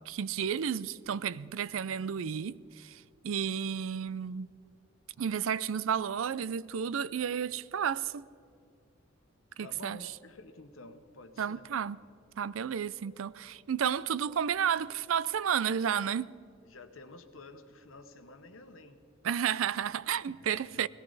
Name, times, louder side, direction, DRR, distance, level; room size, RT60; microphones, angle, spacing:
voice 1, 0.1-4.5 5.2-8.3 9.6-10.1 11.4-12.0 12.4-16.3 19.2-20.9, right 8 dB, 85° right, 0.4 m, -32 dB
voice 2, 9.6-11.7 16.6-19.0 20.4-20.5 20.7-20.9, left 2 dB, 85° left, 1.2 m, -51 dB
18.5 x 17.0 x 4.1 m
head